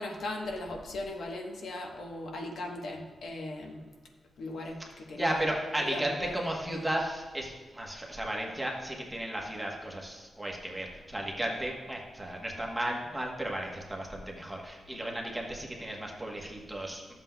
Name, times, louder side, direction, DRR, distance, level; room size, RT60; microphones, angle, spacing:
voice 1, 0.0-3.8 4.4-5.5 5.9-6.3, left 2 dB, 75° left, 1 dB, 1.1 m, -38 dB
voice 2, 5.2-17.1, right 1 dB, 10° right, -1 dB, 1.1 m, -34 dB
12.5 x 7.5 x 2.2 m, 1.3 s
wide cardioid pair, 160°, 0 cm